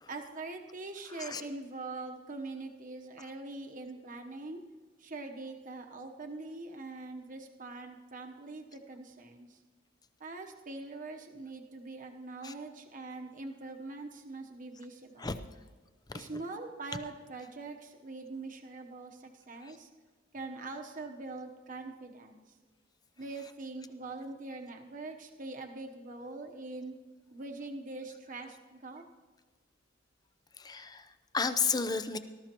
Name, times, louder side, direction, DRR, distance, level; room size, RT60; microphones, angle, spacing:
voice 1, 0.1-4.6 5.0-9.6 10.2-15.4 16.1-19.9 20.3-22.4 23.2-26.9 27.3-29.0, right 3 dB, 45° right, 3 dB, 1.0 m, -43 dB
voice 2, 30.6-31.0 31.3-32.2, left 5 dB, 20° left, 10 dB, 0.6 m, -32 dB
18.5 x 13.0 x 3.0 m, 1.4 s
head